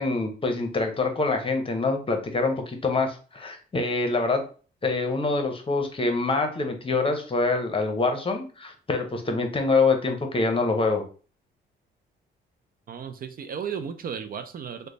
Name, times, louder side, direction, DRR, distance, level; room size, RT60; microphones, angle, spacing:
voice 1, 0.0-4.4 4.8-11.0, left 3 dB, 25° left, 5 dB, 0.8 m, -25 dB
voice 2, 12.9-14.9, right 7 dB, 45° right, 9 dB, 0.4 m, -34 dB
3.1 x 2.1 x 3.8 m, 0.38 s
cardioid pair, 90°, 20 cm